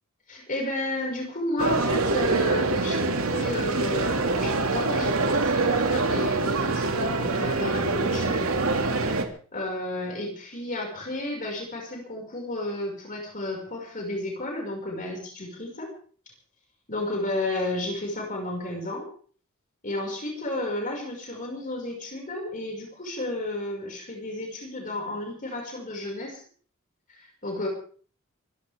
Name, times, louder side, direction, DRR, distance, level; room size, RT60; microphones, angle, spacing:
voice 1, 0.3-8.4 9.0-9.3 9.5-15.9 16.9-19.1 19.8-26.4 27.1-27.7, left 1 dB, 40° left, 0 dB, 6.0 m, -32 dB
sound 1, 1.6-9.2, right 3 dB, 80° right, 2.5 m, -25 dB
24.5 x 16.0 x 3.7 m, 0.44 s
head